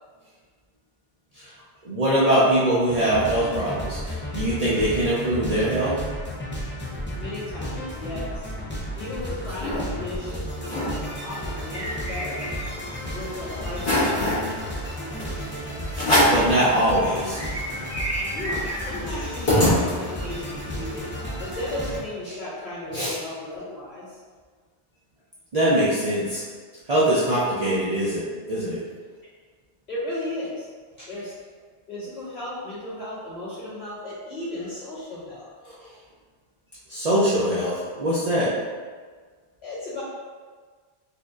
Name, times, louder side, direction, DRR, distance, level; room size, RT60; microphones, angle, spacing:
voice 1, 1.8-6.0 15.9-17.4 22.9-23.1 25.5-26.4 26.9-28.8 35.7-35.8 36.9-38.5, right 1 dB, 45° right, -8 dB, 0.6 m, -22 dB
sound 1, 2.9-22.0, equal, 20° left, 0.4 m, -33 dB
voice 2, 7.2-8.5 9.0-12.4 13.1-14.7 18.3-21.1 21.4-24.2 29.9-30.7 31.1-31.3 31.9-35.4 39.6-40.0, left 1 dB, 85° left, -11 dB, 1.8 m, -35 dB
sound 2, 9.0-9.8 10.3-10.4 10.6-10.9 11.3-12.9 13.3-13.4 13.8-14.5 15.2-15.3 15.9-16.5 17.0-17.1 17.3-20.3, left 1 dB, 50° left, 1.5 m, -24 dB
4.2 x 2.6 x 2.4 m, 1.5 s
omnidirectional pair, 1.1 m